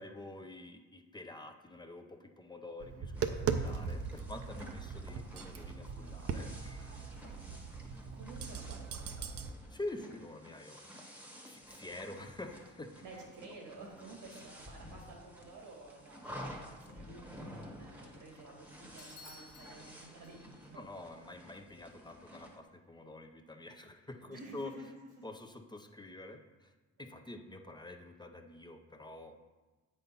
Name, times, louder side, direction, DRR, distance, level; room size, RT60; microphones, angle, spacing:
voice 1, 0.0-7.1 9.7-10.8 11.5-12.9 20.7-24.7 25.2-26.7 27.0-29.4, left 2 dB, 15° left, 4 dB, 0.6 m, -47 dB
Tap, 2.8-9.5, right 6 dB, 50° right, 0.6 m, -39 dB
sound 1, 3.1-22.6, equal, 5° right, 1.1 m, -52 dB
voice 2, 7.1-7.7 8.1-9.3 13.0-20.9 24.3-24.9 25.2-25.3, right 2 dB, 90° right, 0 dB, 1.9 m, -52 dB
Bell / Doorbell, 19.0-20.8, left 3 dB, 50° left, 1.3 m, -56 dB
7.6 x 4.3 x 5.3 m, 1.2 s
cardioid pair, 90°, 30 cm